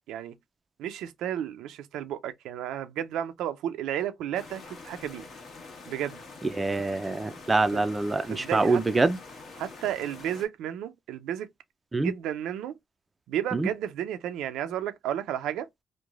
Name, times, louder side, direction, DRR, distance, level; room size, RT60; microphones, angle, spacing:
voice 1, 0.8-5.2 5.9-6.2 7.7-7.8 8.3-8.8 9.6-11.5 12.0-12.8 13.3-15.7, right 10 dB, 90° right, 0.4 m, -32 dB
sound 1, 4.3-10.5, left 3 dB, 55° left, 1.1 m, -45 dB
voice 2, 6.4-9.2 11.9-12.1 13.5-13.7, right 3 dB, 20° right, 0.4 m, -25 dB
3.1 x 2.1 x 2.3 m
cardioid pair, 90°, 0 cm